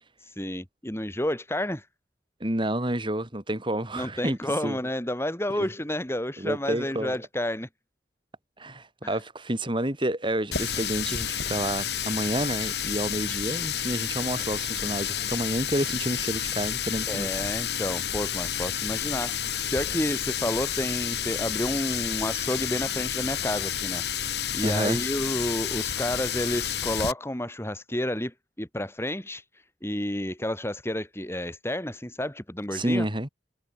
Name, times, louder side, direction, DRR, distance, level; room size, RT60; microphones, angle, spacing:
voice 1, 0.2-1.9 3.9-7.7 9.0-9.2 17.1-33.1, left 1 dB, 15° left, 3.7 m, -30 dB
voice 2, 2.4-4.4 4.6-4.8 5.6-5.7 6.4-7.2 8.6-17.3 24.6-25.0 32.7-33.3, right 1 dB, 30° right, 4.7 m, -29 dB
Water tap faucet, 10.5-27.1, left 9 dB, 70° left, 7.8 m, -30 dB
head